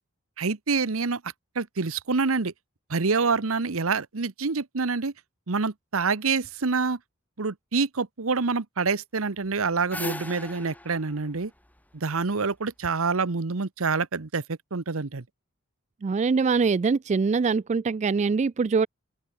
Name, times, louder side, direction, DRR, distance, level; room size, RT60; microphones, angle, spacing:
voice 1, 0.4-1.2 1.6-2.5 2.9-5.1 5.5-7.0 7.4-11.5 11.9-14.4 14.7-15.2, right 4 dB, 80° right, 1.0 m, -26 dB
sound 1, 9.4-12.6, left 1 dB, 10° left, 5.5 m, -38 dB
voice 2, 16.0-18.9, right 4 dB, 35° right, 0.3 m, -23 dB
open air
head